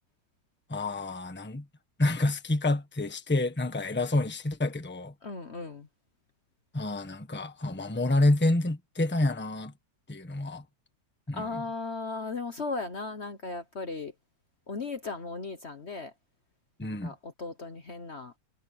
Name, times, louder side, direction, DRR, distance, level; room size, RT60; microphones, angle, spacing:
voice 1, 0.7-1.6 2.0-5.1 6.7-9.7 10.1-10.6 11.3-11.6 16.8-17.1, left 2 dB, 5° left, 1.2 m, -28 dB
voice 2, 5.2-5.9 11.3-14.1 14.7-16.1 16.8-18.4, left 3 dB, 40° left, 1.3 m, -36 dB
omnidirectional pair, 1.9 m